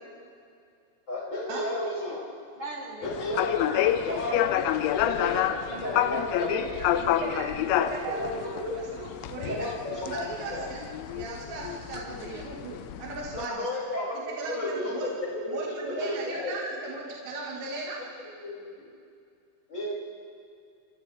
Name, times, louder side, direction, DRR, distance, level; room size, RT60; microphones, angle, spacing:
voice 1, 1.1-2.2 3.0-4.3 4.9-5.4 5.8-6.6 7.7-7.9 8.2-8.8 9.5-10.2 10.5-10.7 13.5-14.1 14.4-16.5 18.4-18.9 19.7-19.9, left 1 dB, 25° left, -6 dB, 6.5 m, -32 dB
voice 2, 2.6-3.2 3.6-4.7 5.2-6.6, right 1 dB, 35° right, -3 dB, 3.1 m, -41 dB
sound 1, 3.0-13.5, left 11 dB, 80° left, 3.0 m, -29 dB
voice 3, 7.2-10.8 11.1-13.7 14.4-15.1 15.5-18.0, right 3 dB, 75° right, -4 dB, 4.3 m, -37 dB
29.0 x 28.5 x 3.6 m, 2.4 s
omnidirectional pair, 5.3 m